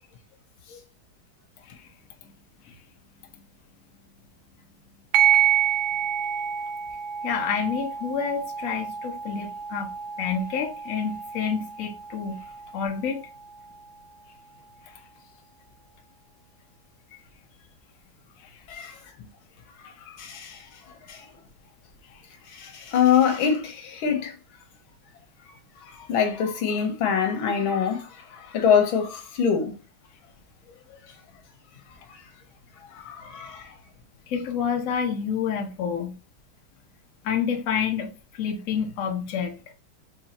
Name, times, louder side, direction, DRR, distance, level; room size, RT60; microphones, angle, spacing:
sound 1, 5.1-14.1, right 9 dB, 80° right, 1.4 m, -28 dB
voice 1, 7.2-9.9 10.2-12.4 12.7-13.2 14.9-15.0 18.4-18.6 22.1-22.2 34.3-36.1 37.2-39.6, left 7 dB, 55° left, 1.0 m, -28 dB
voice 2, 18.7-19.0 20.1-20.7 21.1-21.3 22.5-24.3 25.8-29.8 32.1-32.2 32.9-33.7, left 7 dB, 85° left, 1.8 m, -25 dB
5.3 x 3.2 x 2.9 m
omnidirectional pair, 2.2 m